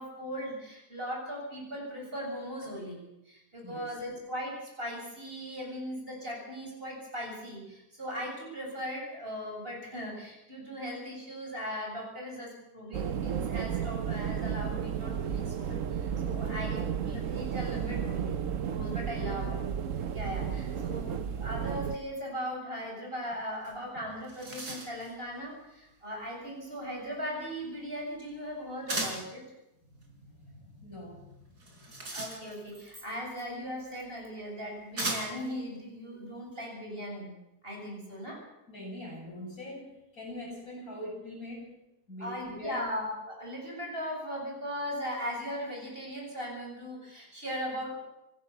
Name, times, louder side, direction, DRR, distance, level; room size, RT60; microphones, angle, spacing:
voice 1, 0.0-18.4 18.6-19.6 20.1-29.4 32.1-37.3 37.6-38.4 42.2-48.0, equal, 35° right, -1 dB, 7.8 m, -38 dB
sound 1, 12.9-22.0, right 8 dB, 60° right, 1.2 m, -33 dB
voice 2, 19.1-19.5 30.1-31.3 38.7-39.9 40.1-41.7 42.1-42.9, left 1 dB, 65° left, -1 dB, 8.4 m, -42 dB
sound 2, 23.7-23.8 24.1-25.1 28.9-29.3 31.6-32.8 33.9-34.0 35.0-35.5, right 2 dB, 90° right, 5.1 m, -36 dB
27.5 x 16.0 x 7.1 m, 0.89 s
omnidirectional pair, 1.7 m